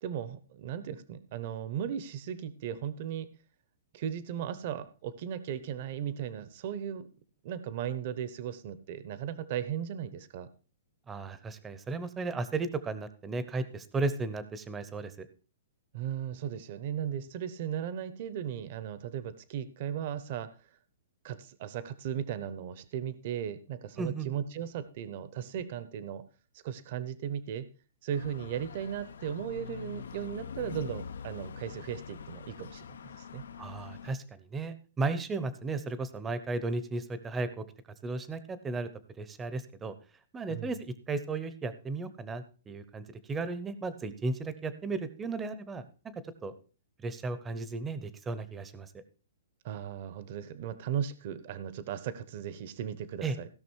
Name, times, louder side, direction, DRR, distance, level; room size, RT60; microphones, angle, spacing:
voice 1, 0.0-3.3 3.9-7.1 7.4-10.5 15.9-20.5 21.2-26.2 26.6-27.7 28.0-33.4 40.5-40.8 49.6-53.5, right 9 dB, 40° right, 15 dB, 0.9 m, -36 dB
voice 2, 11.1-15.3 24.0-24.3 33.6-37.6 38.0-38.9 39.2-39.9 40.3-45.8 46.4-46.5 47.0-48.9 53.2-53.4, right 3 dB, 10° right, 13 dB, 0.8 m, -35 dB
sound 1, 28.1-34.1, left 7 dB, 85° left, 0.9 m, -44 dB
16.0 x 6.1 x 4.6 m, 0.35 s
hypercardioid pair, 170°, 0 cm